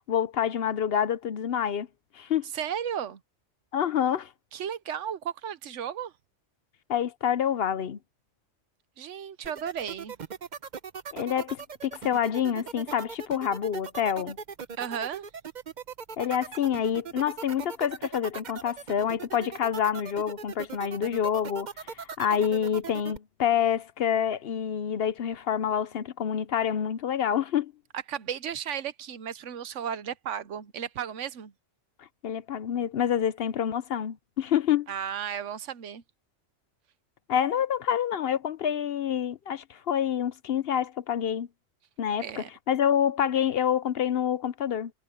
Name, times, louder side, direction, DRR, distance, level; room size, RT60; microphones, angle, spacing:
voice 1, 0.1-1.9 2.1-2.5 3.7-4.3 6.9-8.0 11.1-14.4 16.2-27.7 32.2-34.9 37.3-41.5 42.0-44.9, left 9 dB, 60° left, 0.8 m, -27 dB
voice 2, 2.5-3.2 4.5-6.1 9.0-10.2 14.8-15.3 27.9-31.5 34.9-36.0 42.2-42.5, right 8 dB, 80° right, 1.2 m, -34 dB
sound 1, 9.4-23.2, right 6 dB, 45° right, 0.8 m, -39 dB
omnidirectional pair, 1.2 m